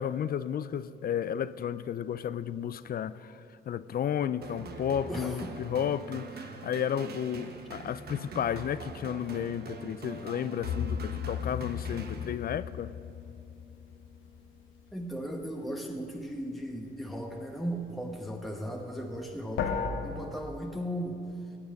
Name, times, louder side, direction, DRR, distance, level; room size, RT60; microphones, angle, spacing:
voice 1, 0.0-12.9, left 9 dB, 50° left, 0.4 m, -33 dB
sound 1, 4.4-12.7, right 4 dB, 50° right, 1.2 m, -43 dB
voice 2, 5.1-5.6 14.9-19.7 20.0-21.2, equal, ahead, 1.1 m, -36 dB
sound 2, 10.6-14.8 19.6-19.9, left 8 dB, 85° left, 1.2 m, -35 dB
17.0 x 8.8 x 5.3 m
cardioid pair, 90°, 20 cm